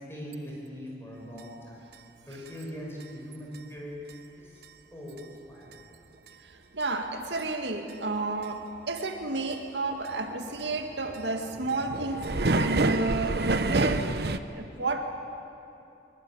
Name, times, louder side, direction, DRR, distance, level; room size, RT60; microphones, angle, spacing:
voice 1, 0.1-1.8 2.3-3.9 4.4-4.6 4.9-5.8, equal, 15° left, -3 dB, 6.1 m, -41 dB
sound 1, 1.4-1.5 1.9-2.0 2.5-2.6 3.0-3.1 3.5-3.6 4.1-4.2 4.6-4.7 5.2-5.3 5.7-5.8 6.3-6.4 6.8-6.9 7.3-7.4 7.9-8.0 8.4-8.5 9.0-9.2 9.5-9.6 9.9-14.4, right 2 dB, 60° right, 0.9 m, -28 dB
voice 2, 6.7-14.1 14.5-15.2, right 2 dB, 80° right, 4 dB, 2.1 m, -31 dB
23.0 x 22.5 x 9.9 m, 2.7 s
head